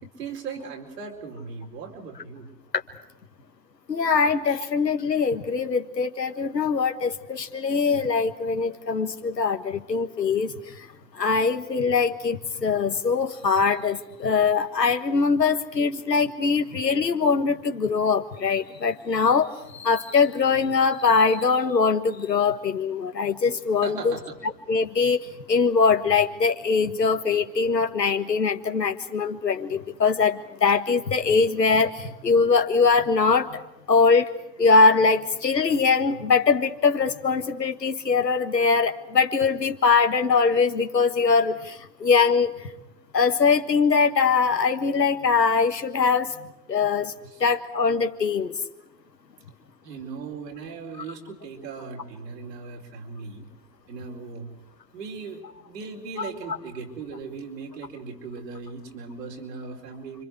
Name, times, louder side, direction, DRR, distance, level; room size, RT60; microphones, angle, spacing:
voice 1, 0.0-2.5 23.8-24.4 47.3-47.4 49.8-53.5 53.9-54.6 54.9-60.3, right 5 dB, 75° right, 1 dB, 4.7 m, -38 dB
voice 2, 3.9-10.5 11.1-24.1 24.7-25.2 25.5-33.6 33.9-34.3 34.6-42.5 43.1-46.3 46.7-47.1 47.4-48.5 56.2-56.6, left 5 dB, 90° left, 6 dB, 1.6 m, -22 dB
30.0 x 25.5 x 4.8 m, 0.93 s
figure-of-eight pair, 85°, 48 cm